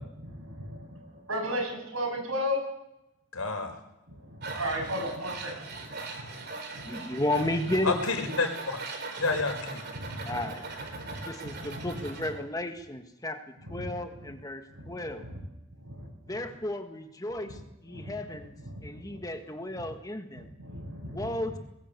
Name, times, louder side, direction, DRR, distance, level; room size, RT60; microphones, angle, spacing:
voice 1, 0.0-2.6 4.1-7.2 9.2-9.3 9.9-10.4 10.9-11.2 11.6-12.0 13.6-13.9 14.1-14.3 14.7-15.4 15.7-16.3 17.4-17.6 17.9-19.2 19.8-19.9 20.4-21.4, equal, 75° right, 1 dB, 8.0 m, -37 dB
voice 2, 3.3-3.7 7.8-8.8 9.2-9.8 11.2-11.3, left 3 dB, 85° left, 5 dB, 4.6 m, -29 dB
Tools, 4.4-12.3, right 3 dB, 50° right, 3.7 m, -40 dB
voice 3, 6.8-7.9 10.3-10.6 11.3-15.3 16.3-18.6 18.8-20.5 21.0-21.6, left 1 dB, 15° left, 6 dB, 1.7 m, -33 dB
20.5 x 17.0 x 8.4 m, 0.87 s
head